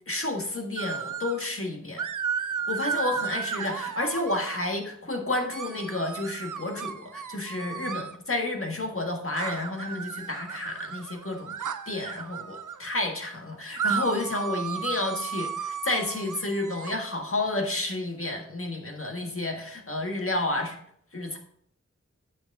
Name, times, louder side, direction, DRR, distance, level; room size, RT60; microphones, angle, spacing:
voice 1, 0.1-2.0 2.7-11.6 11.9-20.7 21.1-21.4, left 2 dB, 45° left, 2 dB, 1.7 m, -30 dB
sound 1, 0.8-1.5 2.0-4.8 5.5-8.2 9.4-12.8 13.8-16.9, right 7 dB, 85° right, 0.6 m, -34 dB
9.4 x 6.2 x 3.7 m, 0.65 s
wide cardioid pair, 40°, 30 cm